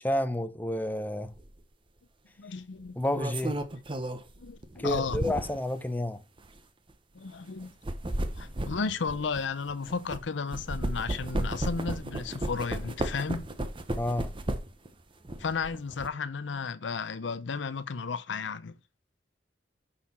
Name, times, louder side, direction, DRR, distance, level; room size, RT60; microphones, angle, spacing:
voice 1, 0.0-1.3 3.0-3.6 4.8-6.2 14.0-14.3, left 1 dB, 10° left, 0.7 m, -30 dB
sound 1, 1.3-1.5 2.8-5.7 6.4-6.5 7.6-10.2 10.5-14.9 15.2-16.1, right 1 dB, 25° right, 0.8 m, -34 dB
voice 2, 2.4-3.0 4.4-5.2 7.1-7.7 8.4-13.5 15.4-18.8, left 5 dB, 85° left, 0.6 m, -33 dB
6.5 x 5.7 x 4.3 m
head